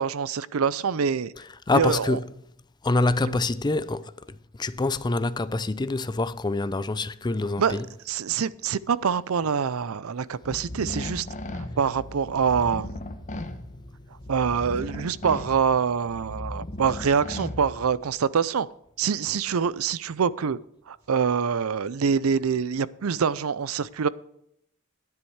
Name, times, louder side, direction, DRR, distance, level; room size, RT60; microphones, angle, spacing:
voice 1, 0.0-1.3 1.7-2.2 3.3-3.4 7.6-7.8 8.1-11.3 11.5-12.9 14.3-18.7 19.0-20.6 20.9-24.1, right 6 dB, 90° right, 0.5 m, -25 dB
voice 2, 1.7-2.2 2.8-4.1 4.6-7.9, left 2 dB, 20° left, 0.5 m, -25 dB
sound 1, 10.4-18.1, left 1 dB, 35° left, 1.1 m, -37 dB
10.5 x 10.0 x 4.7 m
head